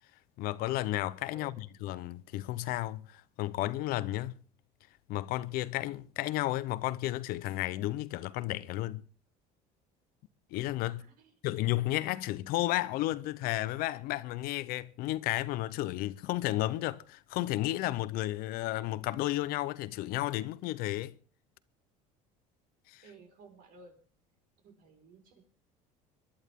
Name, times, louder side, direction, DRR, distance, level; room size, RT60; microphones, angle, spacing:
voice 1, 0.4-4.4 5.1-9.0 10.5-11.0 11.4-21.1 22.9-23.0, left 16 dB, 65° left, 0.8 m, -33 dB
voice 2, 1.3-1.6 10.8-11.3 23.0-24.0 24.6-25.4, right 4 dB, 65° right, 5.0 m, -56 dB
24.5 x 11.5 x 3.7 m
cardioid pair, 115°, 16 cm